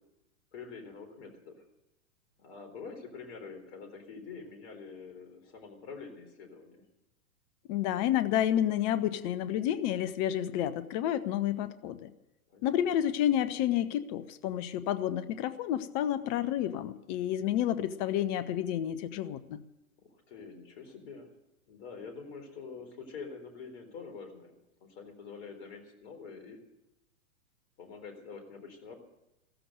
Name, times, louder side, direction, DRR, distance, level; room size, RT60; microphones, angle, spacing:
voice 1, 0.5-1.6 2.4-6.8 12.5-12.8 20.0-21.3 21.7-26.6 27.8-29.0, left 5 dB, 50° left, 6 dB, 4.0 m, -46 dB
voice 2, 7.7-12.1 12.6-19.6, left 11 dB, 30° left, 14 dB, 0.8 m, -30 dB
15.5 x 14.0 x 6.6 m, 0.91 s
figure-of-eight pair, 105°, 43 cm